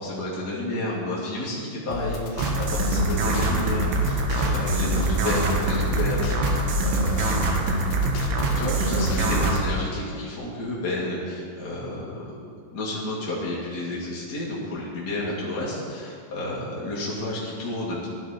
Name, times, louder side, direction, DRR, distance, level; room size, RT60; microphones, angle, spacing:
voice 1, 0.0-7.4 8.6-12.3 12.7-18.1, left 1 dB, 30° left, -7 dB, 2.0 m, -31 dB
sound 1, 1.9-9.6, left 5 dB, 80° left, 4.0 m, -32 dB
sound 2, 2.4-9.6, right 2 dB, 75° right, 3.9 m, -24 dB
21.0 x 12.5 x 4.5 m, 2.4 s
omnidirectional pair, 5.5 m